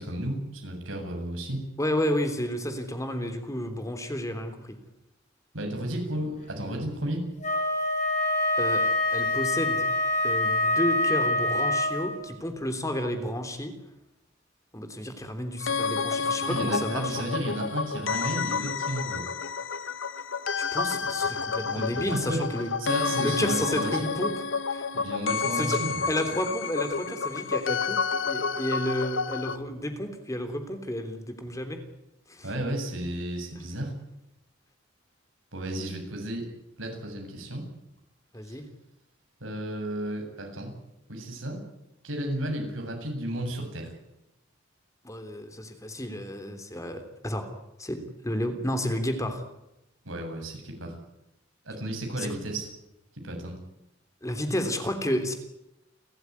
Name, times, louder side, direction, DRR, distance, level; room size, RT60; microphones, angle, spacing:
voice 1, 0.0-1.7 5.5-7.2 16.5-19.2 21.7-22.4 22.8-24.2 24.9-26.0 31.5-31.6 32.4-33.9 35.5-36.5 36.8-37.7 38.4-38.6 39.4-40.7 41.1-41.6 42.0-43.9 50.0-51.0 51.6-52.7 53.2-53.6, right 1 dB, 90° right, 3 dB, 7.9 m, -33 dB
voice 2, 1.8-4.8 8.6-8.8 9.1-9.9 10.2-13.7 14.7-17.3 20.6-22.7 23.0-24.3 24.7-24.8 25.6-25.8 26.1-31.8 32.3-32.5 38.3-38.6 45.0-47.5 47.8-49.4 52.2-52.3 54.2-55.3, left 1 dB, 15° left, 7 dB, 3.3 m, -31 dB
Wind instrument woodwind instrument, 7.4-12.3, left 1 dB, 40° left, 5.3 m, -25 dB
sound 1, 15.6-29.6, left 5 dB, 75° left, 1.3 m, -30 dB
30.0 x 14.5 x 9.8 m, 0.89 s
head